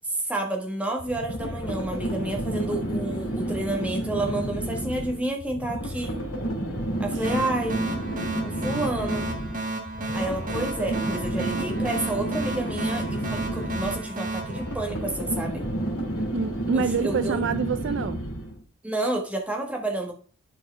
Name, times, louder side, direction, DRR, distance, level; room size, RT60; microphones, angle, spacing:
voice 1, 0.0-6.2 7.0-7.8 8.4-9.4 10.1-15.6 16.7-17.4 18.8-20.1, right 2 dB, 5° right, 1.2 m, -30 dB
sound 1, 1.0-18.6, right 1 dB, 85° left, 1.8 m, -31 dB
sound 2, 7.2-15.6, right 2 dB, 35° right, 1.5 m, -33 dB
voice 2, 16.3-18.2, right 5 dB, 55° right, 0.4 m, -26 dB
10.5 x 4.5 x 3.3 m
head